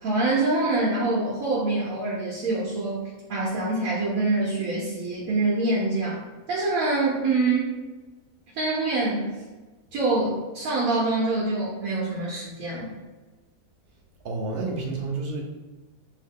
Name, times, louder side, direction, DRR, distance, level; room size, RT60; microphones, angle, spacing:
voice 1, 0.0-6.2 6.5-7.7 8.6-9.3 9.9-12.9, right 2 dB, 75° right, -5 dB, 1.2 m, -25 dB
voice 2, 14.2-15.4, right 3 dB, 55° right, 0 dB, 0.7 m, -29 dB
2.9 x 2.7 x 3.5 m, 1.2 s
omnidirectional pair, 1.5 m